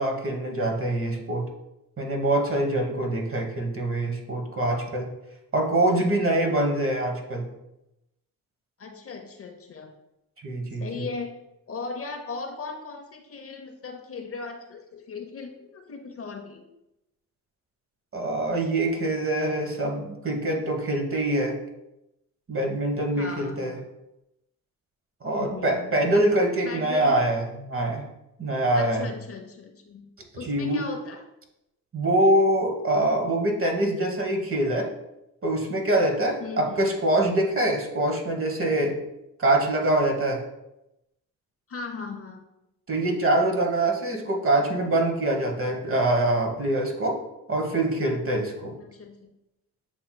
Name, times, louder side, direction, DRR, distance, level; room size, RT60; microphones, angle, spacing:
voice 1, 0.0-1.5 2.0-5.1 5.5-7.5 10.4-10.9 18.1-21.6 22.5-23.8 25.2-28.1 28.4-29.1 30.4-30.8 31.9-34.9 35.4-39.0 39.4-40.4 42.9-47.2 47.5-48.7, right 1 dB, 35° right, 2 dB, 1.2 m, -24 dB
voice 2, 8.8-9.9 10.8-11.3 11.7-16.6 23.2-23.8 25.2-26.1 26.6-27.1 28.7-30.1 30.3-31.2 36.4-36.9 41.7-42.4 48.8-49.3, left 4 dB, 40° left, 4 dB, 0.7 m, -37 dB
7.8 x 2.9 x 2.2 m, 0.89 s
supercardioid pair, 65°, 37 cm